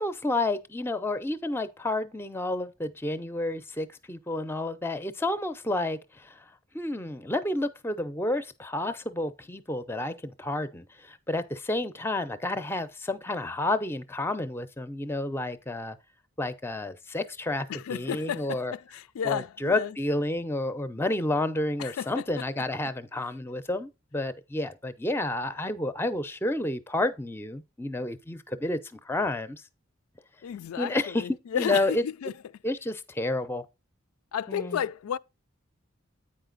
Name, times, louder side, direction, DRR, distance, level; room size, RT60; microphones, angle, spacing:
voice 1, 0.0-6.3 6.7-16.0 16.4-18.7 19.2-29.6 30.8-31.3 31.5-32.0 32.6-33.7 34.5-34.8, left 2 dB, 10° left, 0.5 m, -30 dB
voice 2, 17.7-19.9 21.8-22.5 30.4-32.3 34.3-35.2, left 8 dB, 85° left, 0.3 m, -33 dB
8.7 x 5.0 x 3.9 m
head